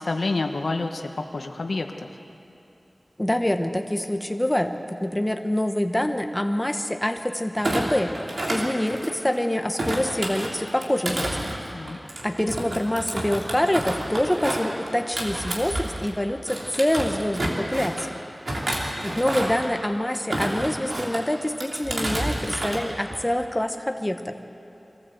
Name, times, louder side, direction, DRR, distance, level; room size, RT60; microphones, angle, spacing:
voice 1, 0.0-2.1 11.7-12.0, left 3 dB, 85° left, 5 dB, 1.1 m, -28 dB
voice 2, 3.2-8.1 8.5-11.4 12.2-18.1 19.0-24.3, left 1 dB, 15° left, 6 dB, 1.2 m, -25 dB
Thump thud, 7.6-9.3 9.8-16.1 16.5-18.1 18.5-19.7 20.1-21.2 21.6-22.8 23.1-23.4, right 1 dB, 75° right, 3.1 m, -29 dB
23.5 x 14.5 x 7.9 m, 2.8 s
wide cardioid pair, 60°, 0 cm